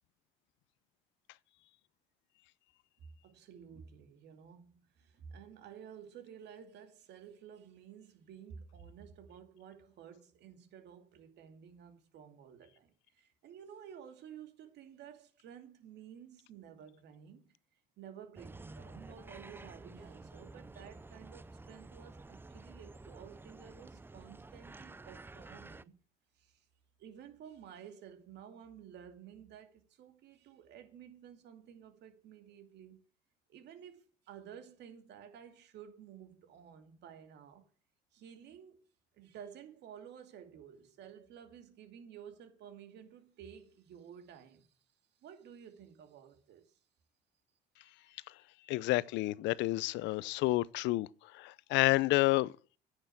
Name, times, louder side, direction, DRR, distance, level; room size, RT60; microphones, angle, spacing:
voice 1, 3.0-17.5 18.0-26.0 26.3-26.6 27.0-33.0 33.5-37.7 38.1-38.8 39.1-44.8 45.2-46.8, right 8 dB, 65° right, 2.5 m, -53 dB
sound 1, 18.4-25.8, right 2 dB, 10° right, 0.5 m, -51 dB
voice 2, 48.7-52.5, left 19 dB, 70° left, 0.6 m, -30 dB
9.6 x 6.7 x 7.8 m
supercardioid pair, 95°, 19 cm